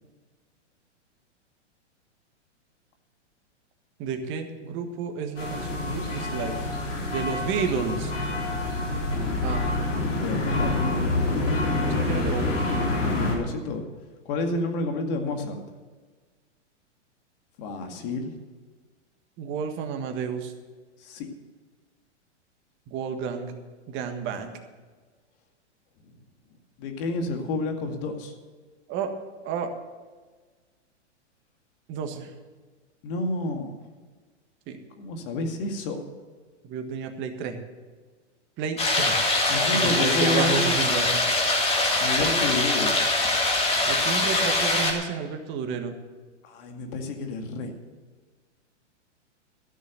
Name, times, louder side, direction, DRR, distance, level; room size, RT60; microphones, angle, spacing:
voice 1, 4.0-6.6 7.1-8.1 9.4-9.6 11.8-12.6 19.4-20.5 22.9-23.5 23.9-24.5 28.9-29.1 29.4-29.7 31.9-32.3 34.7-34.8 36.6-37.6 38.6-39.2 39.7-41.2 43.9-45.9, right 6 dB, 30° right, 6 dB, 1.6 m, -31 dB
sound 1, 5.4-13.3, left 2 dB, 90° left, 3.8 m, -27 dB
voice 2, 9.9-10.8 13.0-13.9 14.3-15.6 17.6-18.3 21.0-21.3 26.8-28.3 33.0-33.8 35.0-36.0 39.5-40.7 42.0-43.0 46.4-47.7, left 2 dB, 50° left, 4 dB, 2.2 m, -30 dB
sound 2, 38.8-44.9, left 2 dB, 15° left, 2.2 m, -23 dB
14.0 x 6.3 x 9.2 m, 1.4 s
hypercardioid pair, 130°, 36 cm